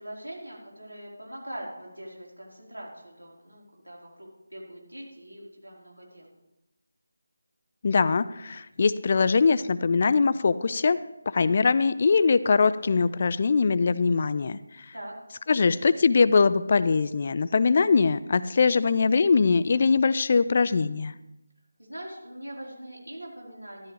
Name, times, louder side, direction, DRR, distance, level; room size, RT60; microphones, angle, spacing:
voice 1, 0.0-6.3 14.9-15.1 21.8-23.9, right 1 dB, 80° right, -3 dB, 4.5 m, -42 dB
voice 2, 7.8-11.0 11.3-14.9 15.5-21.1, left 4 dB, 35° left, 15 dB, 0.4 m, -22 dB
13.0 x 12.5 x 3.4 m, 0.91 s
figure-of-eight pair, 160°, 0 cm